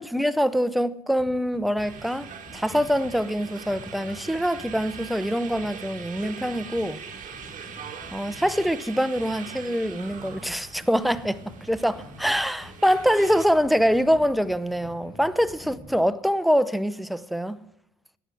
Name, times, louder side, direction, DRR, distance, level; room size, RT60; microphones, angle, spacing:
voice 1, 0.0-7.0 8.1-17.6, equal, ahead, 0.8 m, -24 dB
sound 1, 1.2-16.0, left 1 dB, 30° left, 7.6 m, -47 dB
sound 2, 1.8-13.5, right 7 dB, 50° right, 3.1 m, -42 dB
14.0 x 9.8 x 7.6 m
cardioid pair, 110°, 17 cm